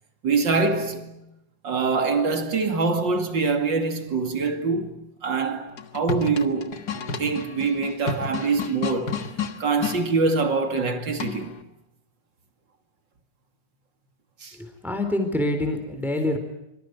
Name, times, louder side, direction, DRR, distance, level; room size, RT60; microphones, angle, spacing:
voice 1, 0.2-1.3 1.6-6.8 7.2-9.2 9.6-11.6 14.4-14.6, right 4 dB, 40° right, 2.8 m, -24 dB
sound 1, 5.7-10.0 11.2-11.6, left 5 dB, 40° left, 1.7 m, -31 dB
voice 2, 14.5-16.4, left 1 dB, ahead, 3.9 m, -26 dB
26.0 x 25.0 x 8.0 m
omnidirectional pair, 3.4 m